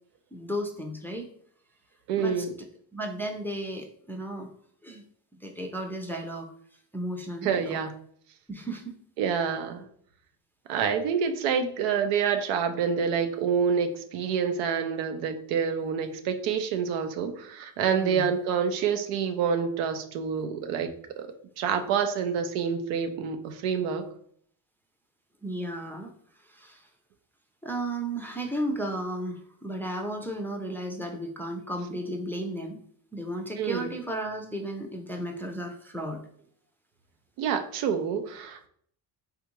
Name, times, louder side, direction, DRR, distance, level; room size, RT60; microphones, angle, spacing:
voice 1, 0.3-1.3 2.2-2.5 2.9-4.5 4.8-5.0 5.3-6.5 6.9-7.8 8.5-8.9 18.0-18.3 25.4-26.1 26.5-26.9 27.6-32.8 33.1-36.2, right 1 dB, 5° left, 2 dB, 0.4 m, -34 dB
voice 2, 2.1-2.5 7.4-7.9 9.2-9.8 10.7-20.9 21.2-24.0 33.6-33.8 37.4-38.7, right 6 dB, 85° right, 7 dB, 0.6 m, -27 dB
3.4 x 2.5 x 2.9 m, 0.62 s
supercardioid pair, 60°, 50 cm